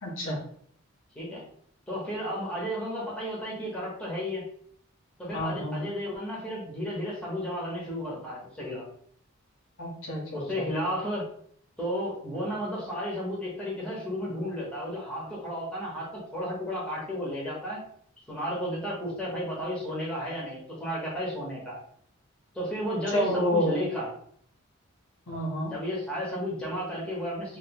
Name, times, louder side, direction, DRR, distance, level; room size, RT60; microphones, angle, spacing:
voice 1, 0.0-0.4 5.3-5.8 9.8-10.7 23.1-23.8 25.3-25.7, left 1 dB, 60° left, -3 dB, 0.9 m, -29 dB
voice 2, 1.9-4.5 5.2-8.8 10.3-11.3 11.8-17.8 18.3-21.8 22.5-24.1 25.7-27.6, equal, 5° left, -6 dB, 1.1 m, -33 dB
3.0 x 2.8 x 2.9 m, 0.62 s
head